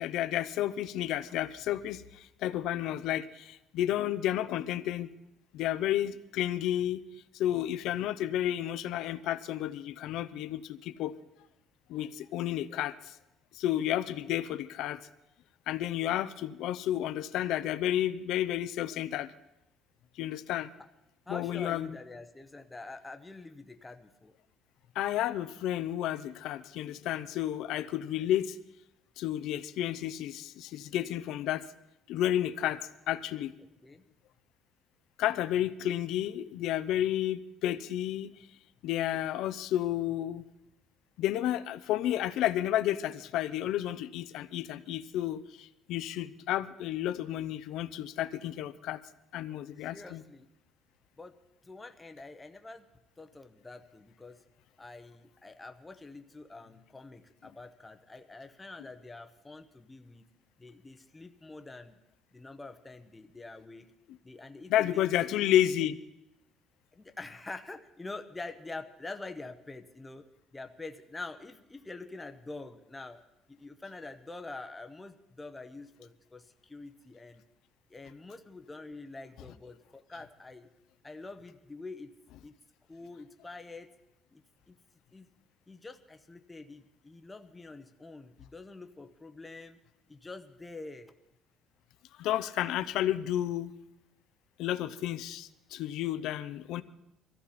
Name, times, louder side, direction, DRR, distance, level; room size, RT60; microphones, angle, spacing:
voice 1, 0.0-5.1 5.5-7.0 7.3-11.1 11.9-13.1 13.5-15.0 15.7-19.3 20.2-20.7 21.3-22.0 24.9-28.6 29.2-31.7 32.1-33.5 35.2-38.3 38.8-40.4 41.2-49.0 49.3-50.2 64.7-66.0 92.2-93.7 94.6-96.8, left 12 dB, 75° left, 11 dB, 0.6 m, -31 dB
voice 2, 21.3-24.3 28.2-28.3 33.8-34.0 49.9-50.5 51.2-51.3 51.6-52.9 53.2-54.4 54.8-60.3 60.6-62.0 62.3-63.9 64.2-65.6 66.9-70.2 70.5-73.2 73.5-77.4 77.9-80.7 81.0-82.1 82.4-82.5 82.9-83.9 84.3-84.4 84.7-84.8 85.1-85.3 85.7-89.8 90.1-91.1, left 3 dB, 10° left, 6 dB, 0.8 m, -46 dB
23.0 x 14.5 x 4.2 m, 0.89 s
cardioid pair, 145°, 0 cm